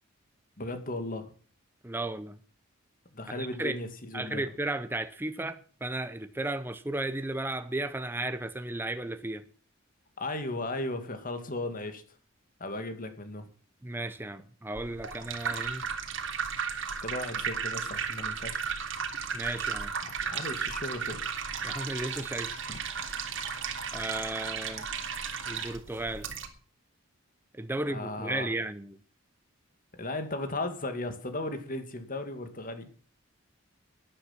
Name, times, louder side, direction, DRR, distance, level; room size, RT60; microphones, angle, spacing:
voice 1, 0.6-1.3 3.1-4.4 10.2-12.0 12.6-13.5 17.0-18.7 20.0-21.2 22.7-22.8 27.9-28.5 29.9-32.9, left 2 dB, 40° left, 2.2 m, -36 dB
voice 2, 1.8-2.4 3.3-3.8 4.1-9.4 13.8-15.8 19.3-19.9 21.6-22.5 23.9-24.9 25.5-26.3 27.5-29.0, right 2 dB, 10° right, 0.7 m, -34 dB
sound 1, 14.7-26.5, right 6 dB, 65° right, 2.2 m, -34 dB
13.0 x 10.0 x 5.9 m
head